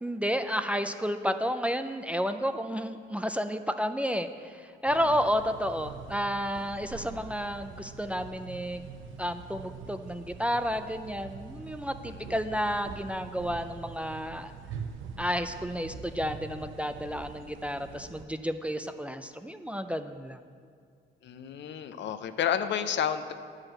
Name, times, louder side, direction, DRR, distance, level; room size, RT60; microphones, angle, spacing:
voice 1, 0.0-8.8 9.2-14.5 15.2-20.4, equal, 5° right, 8 dB, 0.4 m, -31 dB
sound 1, 4.8-18.2, right 5 dB, 75° right, 0.7 m, -44 dB
voice 2, 21.2-23.3, left 8 dB, 65° left, 10 dB, 0.6 m, -31 dB
10.5 x 4.9 x 7.5 m, 2.1 s
cardioid pair, 90°, 20 cm